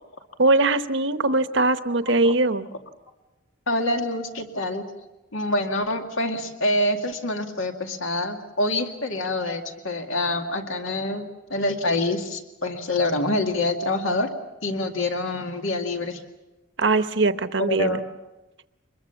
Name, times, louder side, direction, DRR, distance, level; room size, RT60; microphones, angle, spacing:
voice 1, 0.4-2.7 16.8-18.0, right 2 dB, 65° right, 11 dB, 0.9 m, -21 dB
voice 2, 3.7-4.8 5.3-14.3 14.6-16.2 17.6-18.0, left 1 dB, 80° left, 4 dB, 2.2 m, -26 dB
24.5 x 21.5 x 7.1 m, 1.0 s
head